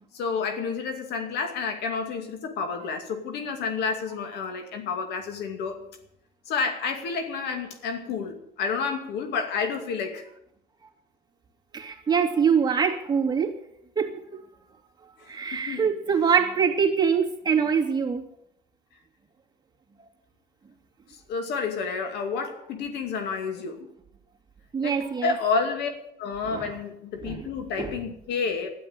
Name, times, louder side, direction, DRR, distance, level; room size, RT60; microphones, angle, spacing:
voice 1, 0.1-5.8 6.5-10.3 15.2-15.8 21.1-23.9 24.8-25.9 26.2-28.7, left 5 dB, 80° left, 6 dB, 2.4 m, -30 dB
voice 2, 11.7-13.6 14.0-14.4 15.3-18.2 20.0-20.1 22.3-22.4 24.7-25.3 26.5-26.8 27.2-27.5 27.8-28.0, right 6 dB, 25° right, 2 dB, 2.6 m, -24 dB
13.0 x 11.5 x 9.1 m, 0.74 s
cardioid pair, 110°, 17 cm